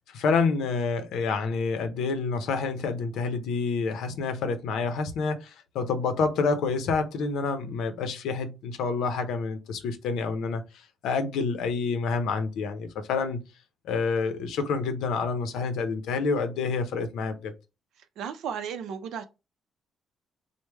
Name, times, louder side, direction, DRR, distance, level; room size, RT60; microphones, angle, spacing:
voice 1, 0.1-10.6 11.0-13.4 13.8-17.5, left 4 dB, 85° left, 0.6 m, -28 dB
voice 2, 18.2-19.2, right 7 dB, 80° right, 0.5 m, -34 dB
3.3 x 2.1 x 3.2 m
cardioid pair, 90°, 0 cm